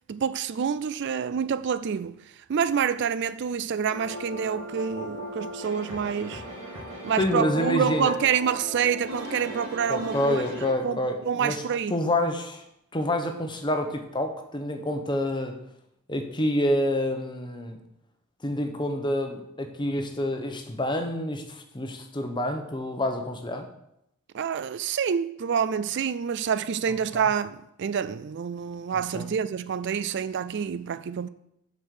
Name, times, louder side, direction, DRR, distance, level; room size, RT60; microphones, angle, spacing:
voice 1, 0.1-2.2 2.5-6.4 7.0-10.4 10.8-11.0 11.3-11.9 24.3-31.3, right 7 dB, 50° right, 0.4 m, -27 dB
sound 1, 3.9-10.8, right 1 dB, 85° right, 2.5 m, -36 dB
voice 2, 7.2-8.1 9.9-11.6 11.9-12.6 12.9-15.6 16.1-17.8 18.4-23.7 27.1-27.2 28.9-29.3, left 1 dB, 20° left, 0.9 m, -28 dB
7.9 x 5.3 x 6.5 m
head